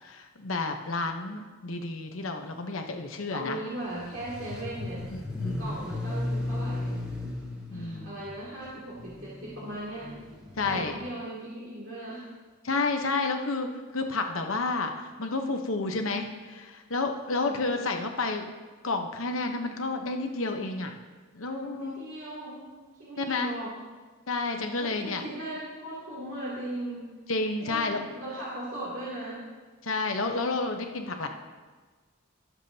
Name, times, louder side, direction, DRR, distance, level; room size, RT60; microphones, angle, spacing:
voice 1, 0.0-3.6 5.1-5.8 7.7-8.1 10.6-11.0 12.6-18.5 18.8-20.9 21.3-22.0 23.2-23.5 24.3-25.2 27.3-28.0 29.8-31.3, left 3 dB, 70° left, 4 dB, 1.0 m, -30 dB
voice 2, 3.3-5.0 5.6-7.0 7.7-10.2 10.6-12.3 13.1-13.3 17.3-17.7 21.4-23.7 24.8-27.1 27.6-29.4, right 1 dB, 65° right, -8 dB, 2.8 m, -38 dB
sound 1, 3.8-10.9, left 2 dB, 5° right, 2.0 m, -36 dB
22.0 x 7.3 x 2.8 m, 1.4 s
head